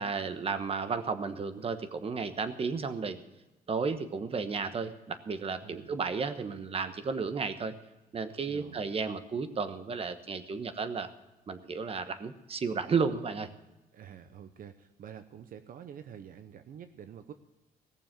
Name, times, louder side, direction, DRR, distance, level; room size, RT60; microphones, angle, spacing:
voice 1, 0.0-3.2 3.7-7.7 8.1-11.1 11.5-13.5, right 5 dB, 35° right, 11 dB, 1.2 m, -33 dB
voice 2, 5.6-5.9 8.5-8.9 13.9-17.3, right 8 dB, 60° right, 10 dB, 0.8 m, -48 dB
18.0 x 7.0 x 7.5 m, 1.0 s
cardioid pair, 110°, 16 cm